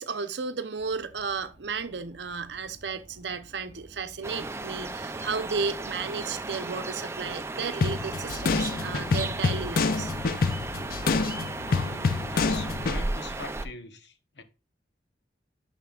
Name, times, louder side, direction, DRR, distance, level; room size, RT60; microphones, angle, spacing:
voice 1, 0.0-10.1, right 5 dB, 75° right, 0.7 m, -33 dB
sound 1, 0.8-6.6, right 1 dB, 35° left, 2.2 m, -55 dB
sound 2, 4.2-13.7, right 2 dB, 15° right, 0.4 m, -35 dB
sound 3, 7.8-13.0, left 4 dB, 55° left, 0.4 m, -27 dB
voice 2, 11.6-14.4, left 3 dB, 80° left, 0.9 m, -42 dB
10.5 x 5.7 x 2.4 m
head